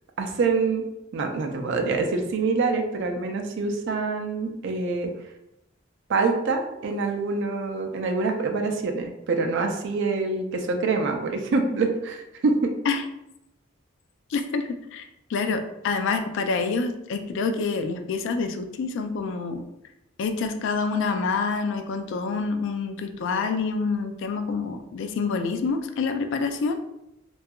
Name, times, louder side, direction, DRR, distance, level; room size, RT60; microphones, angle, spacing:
voice 1, 0.2-0.8 1.1-5.1 6.1-12.7, right 4 dB, 65° right, 4 dB, 0.4 m, -25 dB
voice 2, 14.3-15.0 15.3-19.6 20.2-26.8, left 4 dB, 65° left, 7 dB, 0.3 m, -27 dB
2.7 x 2.3 x 2.2 m, 0.87 s
head